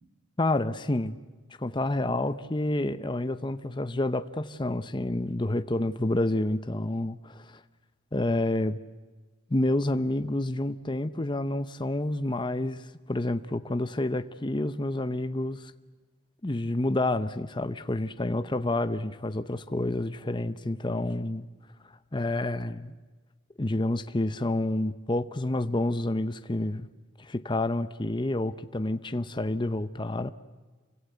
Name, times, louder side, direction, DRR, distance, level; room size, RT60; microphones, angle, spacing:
voice 1, 0.4-1.2 1.6-7.6 8.1-8.8 9.5-15.7 16.4-21.5 22.1-22.9 23.6-26.9 27.2-30.3, left 1 dB, 25° left, 0.8 m, -29 dB
29.0 x 24.5 x 8.1 m
head